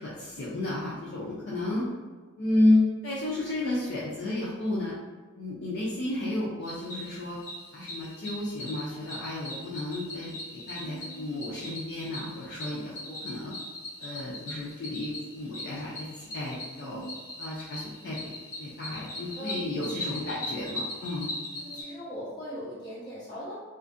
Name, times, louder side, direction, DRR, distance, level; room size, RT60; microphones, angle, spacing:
voice 1, 0.0-1.8 2.4-4.9 5.4-7.4 7.7-13.5 14.0-17.0 17.4-18.3 18.6-21.3, left 2 dB, 50° left, -7 dB, 0.4 m, -31 dB
voice 2, 1.7-2.0 10.8-11.3 16.8-17.3 19.4-20.3 21.5-23.5, equal, 20° left, -11 dB, 1.0 m, -41 dB
Cricket, 6.6-21.8, left 1 dB, 75° left, 1.2 m, -40 dB
2.4 x 2.4 x 2.5 m, 1.4 s
head